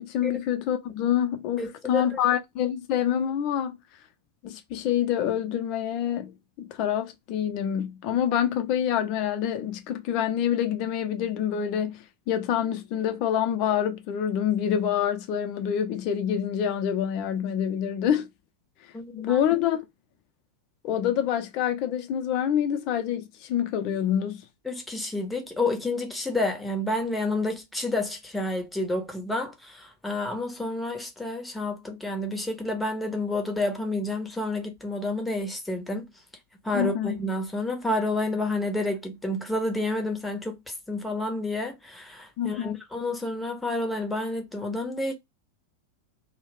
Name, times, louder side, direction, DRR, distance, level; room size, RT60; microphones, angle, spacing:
voice 1, 0.0-3.8 4.4-18.3 19.1-19.8 20.8-24.4 36.7-37.2 42.4-42.8, left 9 dB, 40° left, 0.5 m, -26 dB
voice 2, 1.6-2.2 18.9-19.4 24.7-36.1 36.6-40.6 40.9-45.1, left 2 dB, 5° left, 0.7 m, -29 dB
2.3 x 2.1 x 3.3 m
figure-of-eight pair, 90°, 0 cm